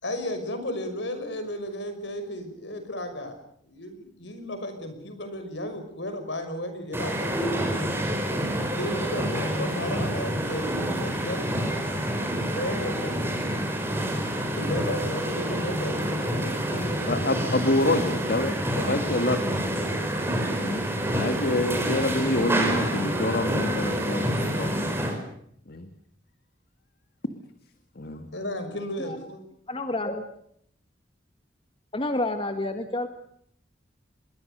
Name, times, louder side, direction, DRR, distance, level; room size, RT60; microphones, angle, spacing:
voice 1, 0.0-3.4 3.7-7.9 8.7-11.5 12.6-13.3 14.5-17.2 28.3-29.4, left 1 dB, 75° left, 8 dB, 5.9 m, -34 dB
sound 1, 6.9-25.2, equal, 15° right, 5.2 m, -28 dB
voice 2, 17.1-19.5 20.6-20.8 21.1-24.8 25.7-25.9 28.0-28.3, left 1 dB, 55° left, 8 dB, 1.8 m, -27 dB
voice 3, 29.7-30.3 31.9-33.1, left 2 dB, 30° left, 7 dB, 1.7 m, -29 dB
26.0 x 22.0 x 6.8 m, 0.68 s
head